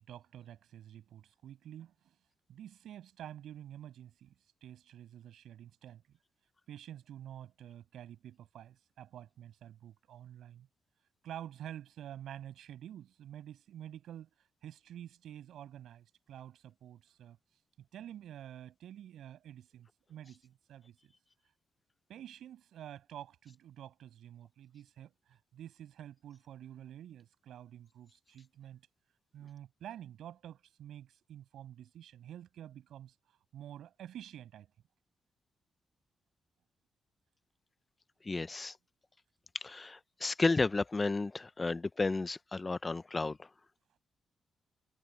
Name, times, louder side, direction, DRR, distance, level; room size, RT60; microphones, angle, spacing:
voice 1, 0.0-2.1 2.5-4.3 4.6-6.0 6.7-10.7 11.2-14.3 14.6-17.4 17.9-21.1 22.1-28.8 29.3-33.1 33.5-34.7, right 11 dB, 85° right, 7.3 m, -49 dB
voice 2, 38.2-38.7 39.6-43.5, left 3 dB, 25° left, 0.6 m, -32 dB
cardioid pair, 90°, 0 cm